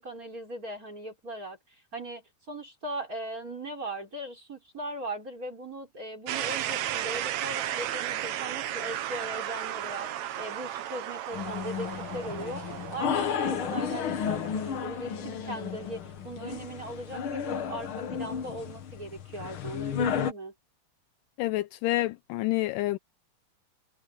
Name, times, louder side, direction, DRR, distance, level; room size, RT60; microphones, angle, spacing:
voice 1, 0.0-1.6 1.9-12.6 12.9-20.5, right 1 dB, 25° right, 4.8 m, -39 dB
sound 1, 6.3-16.1, right 12 dB, 65° right, 2.0 m, -35 dB
sound 2, 11.3-20.3, left 7 dB, 65° left, 1.3 m, -33 dB
voice 2, 21.4-23.0, left 17 dB, 80° left, 2.2 m, -28 dB
omnidirectional pair, 4.0 m